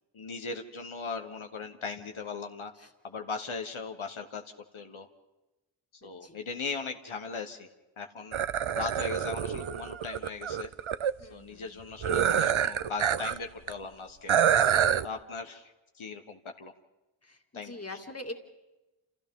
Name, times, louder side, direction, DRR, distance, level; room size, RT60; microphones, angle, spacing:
voice 1, 0.1-2.7 3.0-4.4 4.7-5.1 6.0-7.7 8.0-8.4 8.7-10.7 11.2-14.3 15.0-16.7 17.5-18.0, left 4 dB, 90° left, 5 dB, 1.2 m, -38 dB
voice 2, 6.0-6.4 11.2-11.7 17.2-17.4 17.6-18.3, left 2 dB, 30° left, 3 dB, 2.3 m, -42 dB
sound 1, 8.3-11.1 12.0-13.4 13.7-13.8 14.3-15.1, right 9 dB, 85° right, 0.6 m, -26 dB
28.5 x 28.5 x 3.7 m, 1.0 s
wide cardioid pair, 45°, 47 cm